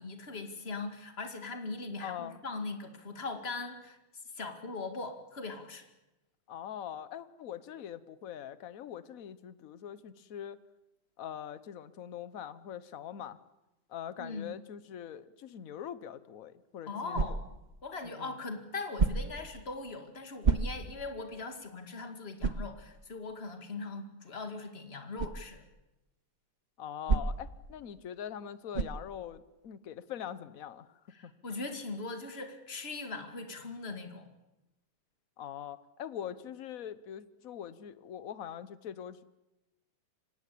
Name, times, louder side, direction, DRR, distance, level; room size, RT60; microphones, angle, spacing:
voice 1, 0.0-4.0 4.3-5.9 14.2-14.5 16.9-17.4 17.8-25.7 31.1-34.3, left 3 dB, 30° left, 7 dB, 2.3 m, -40 dB
voice 2, 2.0-2.4 6.5-10.6 11.2-13.4 13.9-17.4 18.2-18.4 26.8-31.3 35.4-39.2, left 9 dB, 50° left, 15 dB, 1.2 m, -43 dB
sound 1, 17.1-17.7 18.9-19.5 20.4-21.0 21.5-21.6 22.4-22.7 25.2-25.4 27.1-27.6 28.7-29.1, right 4 dB, 65° right, 0.4 m, -29 dB
25.0 x 18.5 x 8.5 m, 0.95 s
omnidirectional pair, 2.3 m